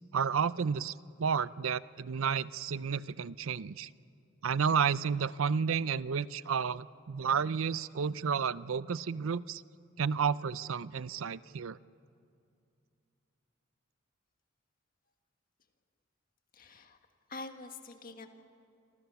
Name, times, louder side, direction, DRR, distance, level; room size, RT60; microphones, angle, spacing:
voice 1, 0.1-0.9 1.2-3.9 4.4-9.6 10.0-11.8, right 6 dB, 85° right, 17 dB, 0.5 m, -31 dB
voice 2, 16.5-17.0 17.3-18.3, left 3 dB, 45° left, 6 dB, 1.7 m, -45 dB
27.0 x 27.0 x 7.1 m, 2.5 s
head